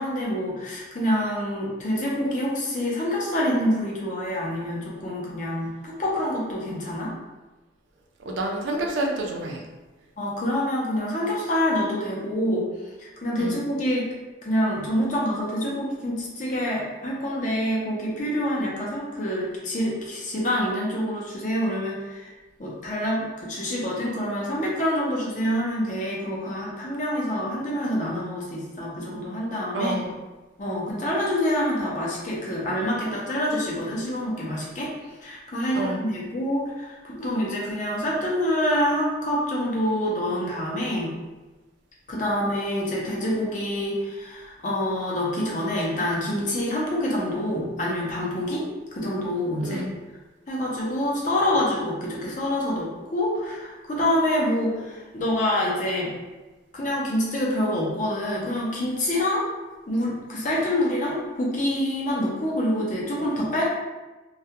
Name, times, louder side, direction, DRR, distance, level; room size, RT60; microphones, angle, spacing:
voice 1, 0.0-7.1 10.2-12.6 13.0-14.1 14.4-22.3 22.6-30.0 30.6-34.9 35.2-41.1 42.1-48.7 48.9-49.8 50.5-56.1 56.7-59.5 59.9-63.6, equal, 40° left, -4 dB, 0.5 m, -26 dB
voice 2, 8.2-9.6 13.4-13.6 29.7-30.1 35.7-36.0 49.6-49.9, right 1 dB, 70° right, 0 dB, 0.4 m, -28 dB
2.3 x 2.2 x 2.8 m, 1.2 s
head